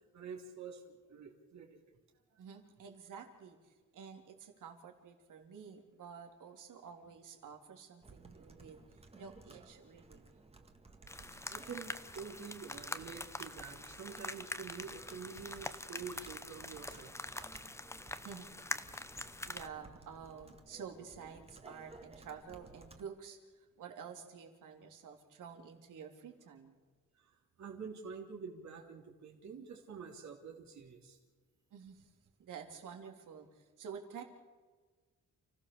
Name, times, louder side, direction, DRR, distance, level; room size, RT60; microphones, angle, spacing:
voice 1, 0.1-1.8 11.5-17.1 27.2-27.3 27.6-31.2, right 6 dB, 60° right, 0 dB, 3.3 m, -47 dB
voice 2, 2.4-10.3 18.2-18.5 19.4-26.8 31.7-32.1 32.4-34.2, right 7 dB, 80° right, 3 dB, 3.7 m, -50 dB
Computer keyboard, 8.0-23.0, right 3 dB, 20° right, 1.8 m, -58 dB
sound 1, 11.1-19.7, left 2 dB, 10° left, 0.9 m, -44 dB
29.5 x 16.5 x 7.1 m, 1.4 s
wide cardioid pair, 145°, 31 cm